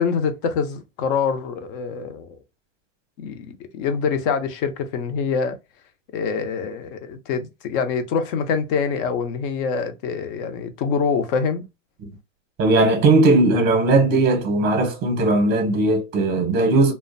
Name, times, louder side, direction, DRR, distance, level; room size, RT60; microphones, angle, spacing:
voice 1, 0.0-2.4 3.2-5.6 6.1-11.6, left 6 dB, 45° left, 0.6 m, -25 dB
voice 2, 12.6-16.9, right 2 dB, 25° right, 0.7 m, -18 dB
2.4 x 2.1 x 2.5 m
supercardioid pair, 135°, 37 cm